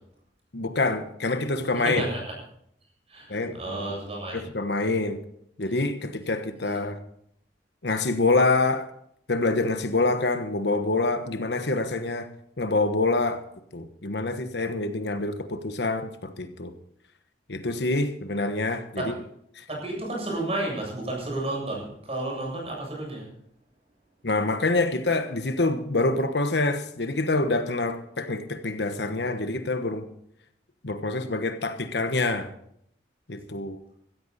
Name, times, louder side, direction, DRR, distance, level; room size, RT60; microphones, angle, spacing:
voice 1, 0.5-2.0 3.3-4.0 4.3-5.2 5.6-7.0 7.8-8.9 9.3-12.3 12.6-13.4 13.7-16.7 17.5-19.1 19.6-19.7 24.2-30.1 30.8-32.5 33.3-33.8, left 2 dB, 65° left, 1.2 m, -26 dB
voice 2, 1.7-2.2 3.1-4.4 19.0-19.2 19.7-23.3, right 2 dB, 35° right, 7.6 m, -31 dB
16.0 x 14.0 x 4.2 m
head